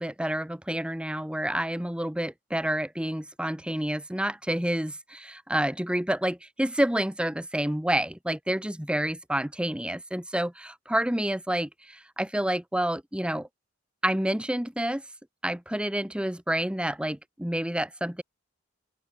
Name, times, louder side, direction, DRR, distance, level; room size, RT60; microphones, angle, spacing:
voice 1, 0.0-13.5 14.0-15.0 15.4-18.2, right 1 dB, 5° right, 1.2 m, -29 dB
open air
head